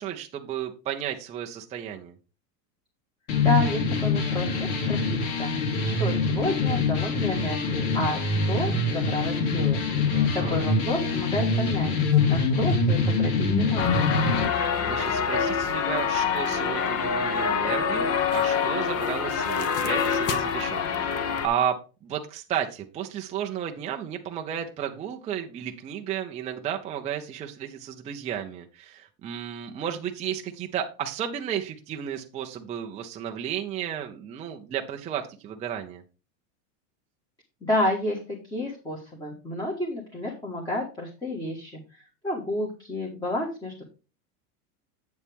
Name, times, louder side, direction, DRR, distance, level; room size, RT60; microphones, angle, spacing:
voice 1, 0.0-2.1 10.1-10.6 14.8-36.0, right 9 dB, 15° right, 3 dB, 0.4 m, -33 dB
sound 1, 3.3-14.4, left 4 dB, 70° left, 2.9 m, -24 dB
voice 2, 3.4-9.8 10.3-14.2 37.6-43.8, left 1 dB, 10° left, -2 dB, 1.6 m, -31 dB
sound 2, 13.8-21.5, left 6 dB, 30° left, 0.9 m, -26 dB
8.1 x 7.2 x 3.5 m, 0.31 s
supercardioid pair, 145°, 47 cm